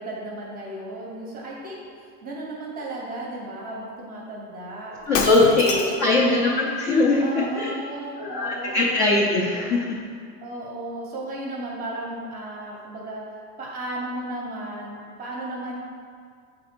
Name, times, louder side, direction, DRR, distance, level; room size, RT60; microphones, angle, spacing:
voice 1, 0.0-6.5 7.2-9.0 10.4-13.2 13.6-15.8, right 1 dB, 20° right, -3 dB, 0.7 m, -35 dB
Shatter, 5.1-6.1, left 5 dB, 80° left, 0.8 m, -27 dB
voice 2, 5.1-7.7 8.2-10.0, left 2 dB, 35° left, -3 dB, 0.4 m, -21 dB
7.3 x 3.3 x 4.3 m, 2.1 s
supercardioid pair, 170°, 47 cm